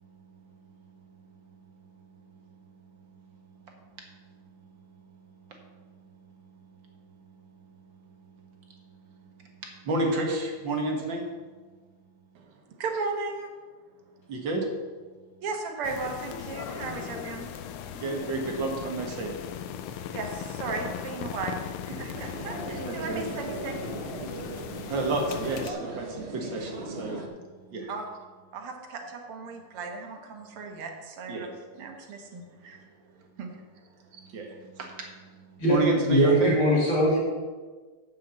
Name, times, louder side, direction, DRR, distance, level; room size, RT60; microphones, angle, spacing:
voice 1, 9.8-11.2 14.3-14.6 17.9-19.3 21.9-22.0 22.9-23.2 24.9-27.2 27.7-27.9 31.3-31.5 34.2-35.1 35.7-36.5, right 2 dB, 60° right, 1 dB, 2.1 m, -30 dB
voice 2, 12.4-13.5 15.4-17.5 20.1-23.8 27.9-28.1 28.5-31.5 31.7-32.9 33.4-33.5, right 4 dB, 90° right, 3 dB, 2.2 m, -36 dB
sound 1, 15.8-25.7, left 9 dB, 85° left, 1.6 m, -38 dB
sound 2, 22.1-27.3, right 2 dB, 40° right, 1.0 m, -38 dB
voice 3, 36.1-37.2, equal, 65° left, -5 dB, 3.9 m, -21 dB
7.6 x 6.4 x 7.6 m, 1.4 s
omnidirectional pair, 2.4 m